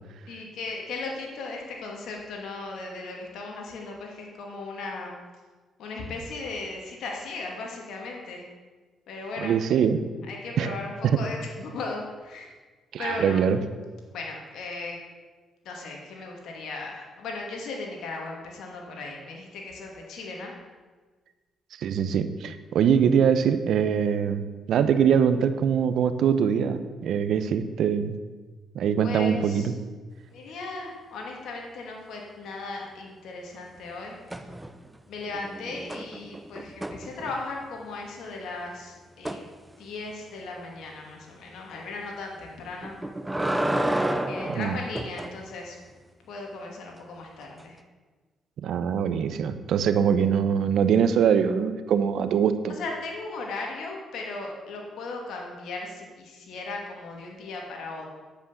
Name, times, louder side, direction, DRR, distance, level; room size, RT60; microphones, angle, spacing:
voice 1, 0.3-5.1 5.8-8.5 9.1-9.6 10.3-12.5 13.0-13.5 14.1-15.0 15.6-20.5 29.0-29.7 30.3-34.1 35.1-39.4 39.8-43.0 44.1-45.8 46.2-47.8 52.7-58.1, left 3 dB, 75° left, 0 dB, 2.7 m, -37 dB
voice 2, 9.4-10.0 10.6-10.7 11.0-11.2 12.9-13.6 21.8-28.1 28.7-29.7 44.5-44.8 48.6-52.8, right 7 dB, 70° right, 11 dB, 0.9 m, -23 dB
sound 1, 34.3-34.9 35.3-37.7 39.2-39.4 42.8-45.4 47.6-47.7, right 1 dB, 10° right, 0.9 m, -30 dB
10.5 x 8.4 x 7.1 m, 1.4 s
cardioid pair, 90°, 0 cm